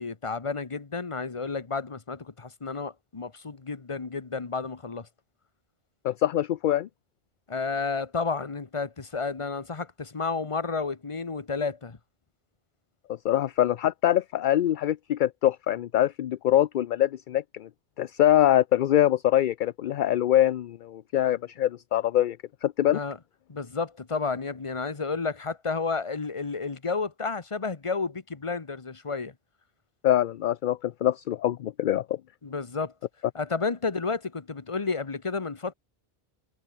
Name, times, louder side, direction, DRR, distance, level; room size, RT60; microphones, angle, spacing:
voice 1, 0.0-5.1 7.5-12.0 22.8-23.2 23.5-29.3 32.4-32.9 33.3-35.7, left 4 dB, 30° left, 1.1 m, -31 dB
voice 2, 6.0-6.9 13.1-17.7 18.0-22.4 22.6-23.0 30.0-32.2, left 12 dB, 60° left, 0.6 m, -24 dB
omnidirectional pair, 1.1 m